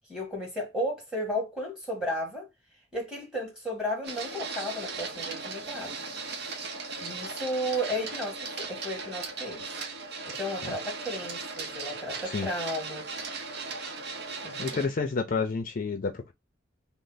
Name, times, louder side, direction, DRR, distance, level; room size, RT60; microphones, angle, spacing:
voice 1, 0.1-2.5 2.9-5.9 7.0-9.6 10.3-13.0 14.4-14.9, equal, 5° right, 1.7 m, -34 dB
Printer, 4.0-14.9, right 4 dB, 60° right, 0.7 m, -37 dB
voice 2, 14.6-16.3, left 4 dB, 45° left, 0.4 m, -30 dB
3.1 x 2.0 x 3.9 m
head